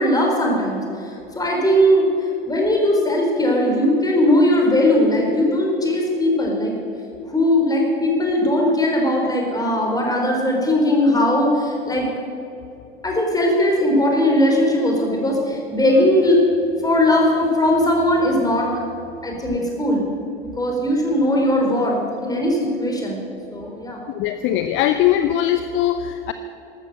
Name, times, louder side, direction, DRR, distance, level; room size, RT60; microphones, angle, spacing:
voice 1, 0.0-2.1 2.5-6.7 7.3-12.1 13.0-16.4 16.8-18.7 19.2-20.1 20.4-23.2 23.5-24.0, left 1 dB, 10° left, 0 dB, 4.1 m, -19 dB
voice 2, 24.1-26.3, left 11 dB, 40° left, 10 dB, 0.7 m, -20 dB
14.0 x 12.5 x 6.5 m, 2.8 s
figure-of-eight pair, 75°, 29 cm